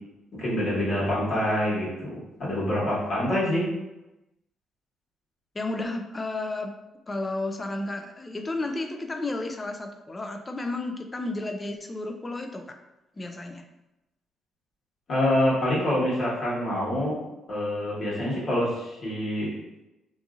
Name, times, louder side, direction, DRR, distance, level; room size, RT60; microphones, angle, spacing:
voice 1, 0.4-3.7 15.1-17.1 17.5-19.5, left 1 dB, 55° left, -7 dB, 1.3 m, -26 dB
voice 2, 5.5-6.7 7.1-12.6 13.2-13.7, left 2 dB, 25° left, 5 dB, 0.4 m, -32 dB
2.7 x 2.6 x 2.4 m, 0.97 s
cardioid pair, 90°, 0 cm